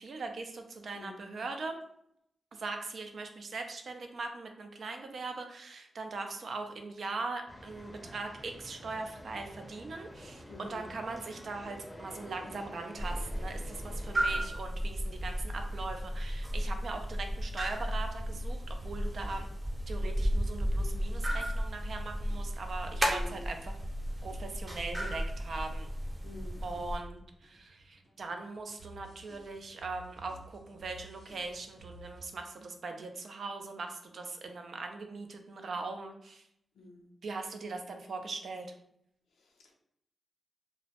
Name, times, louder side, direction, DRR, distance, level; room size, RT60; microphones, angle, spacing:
voice 1, 0.0-1.8 2.5-19.5 19.9-23.7 24.2-25.9 26.6-36.5 37.2-38.7, right 3 dB, 65° right, 5 dB, 0.4 m, -40 dB
sound 1, 7.5-14.5, equal, 10° left, 0.6 m, -49 dB
voice 2, 10.5-10.9 23.0-23.4 26.2-27.2 36.7-37.1 39.4-39.8, left 2 dB, 90° left, 1 dB, 0.5 m, -48 dB
sound 2, 13.0-27.0, equal, 30° right, 0.7 m, -34 dB
sound 3, 17.9-32.3, right 1 dB, 90° right, 0.8 m, -54 dB
2.1 x 2.0 x 2.8 m, 0.75 s
cardioid pair, 50°, 0 cm